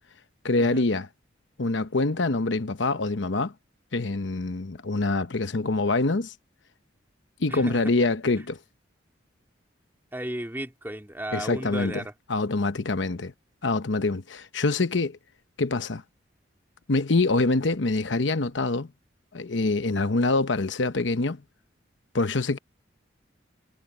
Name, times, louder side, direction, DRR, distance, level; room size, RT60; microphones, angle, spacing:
voice 1, 0.4-1.1 1.6-3.5 3.9-6.3 7.4-8.6 11.3-12.0 12.3-13.3 13.6-15.2 15.6-16.0 16.9-18.9 19.3-21.4 22.1-22.6, left 3 dB, 75° left, 0.9 m, -25 dB
voice 2, 7.5-7.8 8.4-8.5 10.1-12.1, right 1 dB, 10° right, 2.0 m, -34 dB
head